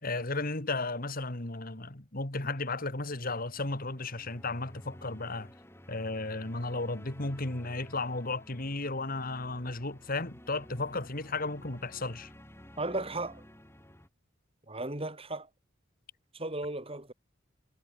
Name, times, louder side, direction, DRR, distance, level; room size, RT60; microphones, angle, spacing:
voice 1, 0.0-5.5 5.9-12.3, left 2 dB, 45° left, 2.6 m, -34 dB
sound 1, 3.0-14.1, equal, 10° left, 5.2 m, -52 dB
voice 2, 12.8-13.4 14.7-15.5 16.3-17.1, right 2 dB, 30° right, 6.5 m, -35 dB
head